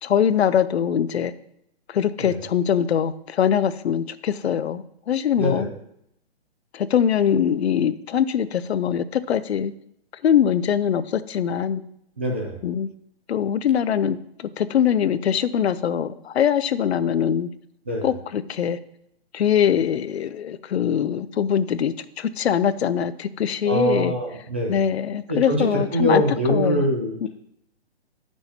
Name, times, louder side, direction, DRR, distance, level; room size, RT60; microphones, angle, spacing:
voice 1, 0.0-1.3 1.9-5.7 6.7-9.7 10.2-11.8 12.6-12.9 13.3-17.5 18.0-18.8 19.3-24.1 24.7-26.2 26.5-26.8 27.2-27.3, left 9 dB, 80° left, 15 dB, 0.6 m, -22 dB
voice 2, 5.4-5.7 12.2-12.6 17.9-18.1 23.6-24.8 25.3-27.3, equal, 10° right, 0 dB, 0.3 m, -23 dB
9.5 x 6.2 x 2.8 m, 0.77 s
hypercardioid pair, 155°, 32 cm